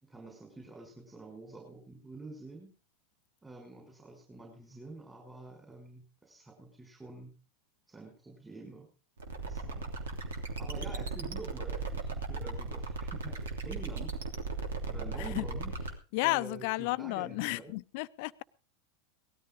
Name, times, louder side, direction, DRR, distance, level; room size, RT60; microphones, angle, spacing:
voice 1, 0.0-2.7 3.4-7.3 7.9-8.9 9.4-9.9 10.6-14.2 14.9-15.7 16.2-17.7, right 3 dB, 15° right, 1 dB, 5.3 m, -47 dB
sound 1, 9.2-15.9, right 3 dB, 75° right, 2.9 m, -37 dB
voice 2, 16.1-18.4, left 21 dB, 60° left, 17 dB, 0.7 m, -32 dB
18.5 x 13.5 x 3.9 m, 0.35 s
hypercardioid pair, 90°, 0 cm